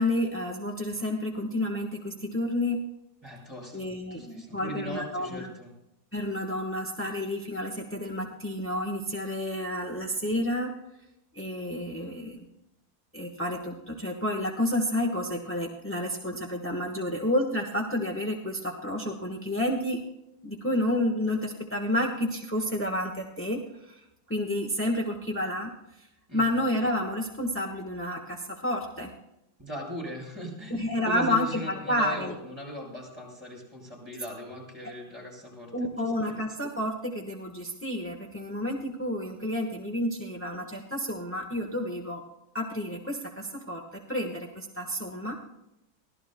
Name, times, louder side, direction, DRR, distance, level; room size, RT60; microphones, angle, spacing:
voice 1, 0.0-2.9 3.7-5.5 6.1-10.7 11.3-12.5 13.1-20.0 20.4-24.0 24.3-25.7 26.0-26.1 26.3-29.1 30.7-32.3 35.7-42.2 42.5-45.4, left 1 dB, 10° left, 0 dB, 0.8 m, -30 dB
voice 2, 3.2-3.8 4.1-5.7 26.3-26.5 29.6-36.4, equal, 10° right, 0 dB, 7.1 m, -39 dB
24.0 x 17.0 x 2.2 m, 0.87 s
omnidirectional pair, 2.3 m